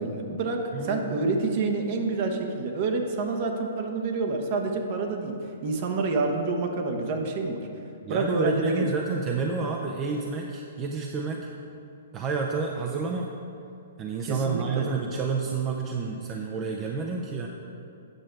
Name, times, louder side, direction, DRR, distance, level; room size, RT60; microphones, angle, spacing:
voice 1, 0.0-5.3 5.6-7.7 8.1-8.8 14.2-14.9, right 3 dB, 45° right, 3 dB, 1.0 m, -28 dB
voice 2, 0.7-1.4 8.0-11.5 12.1-13.3 14.0-17.5, right 4 dB, 25° right, 1 dB, 0.6 m, -30 dB
9.0 x 6.3 x 4.5 m, 2.7 s
hypercardioid pair, 125°, 0 cm